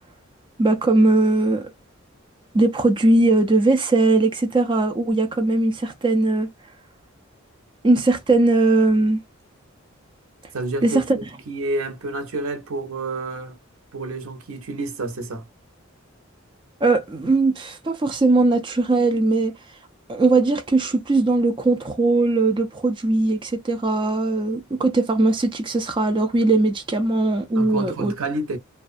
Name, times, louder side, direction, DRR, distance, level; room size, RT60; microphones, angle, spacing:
voice 1, 0.6-1.7 2.5-6.5 7.8-9.2 10.8-11.0 16.8-19.5 20.1-28.1, right 2 dB, 25° right, 0.4 m, -19 dB
voice 2, 10.5-13.6 13.9-15.4 27.5-28.6, right 2 dB, 80° right, 0.6 m, -29 dB
2.5 x 2.2 x 2.4 m
head